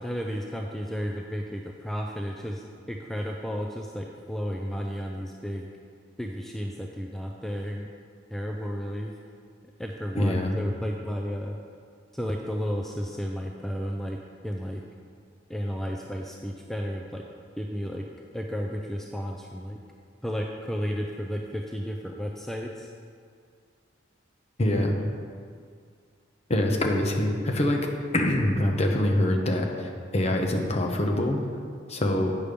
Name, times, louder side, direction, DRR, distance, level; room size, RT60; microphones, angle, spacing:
voice 1, 0.0-5.7 6.2-7.9 8.3-9.1 9.8-11.6 12.1-14.2 14.4-14.8 15.5-17.2 17.6-18.0 18.3-19.8 20.2-22.9 24.7-25.2, equal, ahead, 0 dB, 0.3 m, -33 dB
voice 2, 10.1-10.6 24.6-25.0 26.5-27.9 28.1-31.4 31.9-32.3, left 1 dB, 35° left, 2 dB, 0.8 m, -24 dB
8.3 x 5.1 x 5.1 m, 2.1 s
head